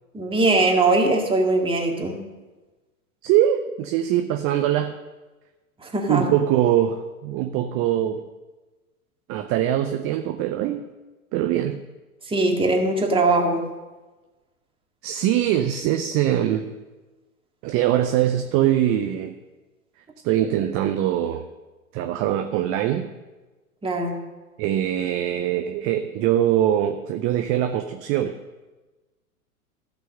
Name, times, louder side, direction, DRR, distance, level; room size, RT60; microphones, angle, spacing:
voice 1, 0.1-2.2 5.8-6.2 12.3-13.6 23.8-24.1, right 2 dB, 10° right, 1 dB, 2.0 m, -21 dB
voice 2, 3.2-4.9 6.1-8.2 9.3-10.8 11.3-11.8 15.0-16.7 17.6-19.3 20.2-21.4 21.9-23.1 24.6-28.4, right 11 dB, 30° right, 7 dB, 0.6 m, -22 dB
14.0 x 6.1 x 6.5 m, 1.2 s
figure-of-eight pair, 95°, 44 cm